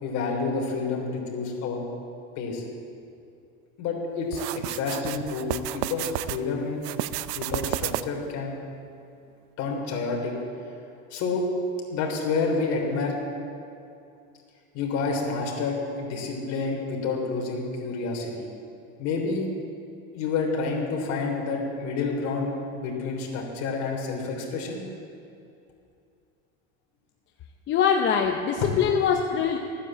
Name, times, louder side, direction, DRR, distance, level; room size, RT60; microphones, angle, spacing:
voice 1, 0.0-1.8 2.4-2.6 3.8-6.8 7.3-8.5 9.6-10.3 11.1-11.4 11.9-13.2 14.7-18.5 19.0-19.5 20.1-24.8, left 4 dB, 45° left, -1 dB, 3.5 m, -29 dB
sound 1, 4.3-6.4 6.8-8.3, right 15 dB, 65° right, 0.6 m, -31 dB
voice 2, 27.7-29.6, left 7 dB, 30° left, 3 dB, 0.7 m, -23 dB
14.5 x 9.7 x 7.5 m, 2.6 s
supercardioid pair, 145°, 36 cm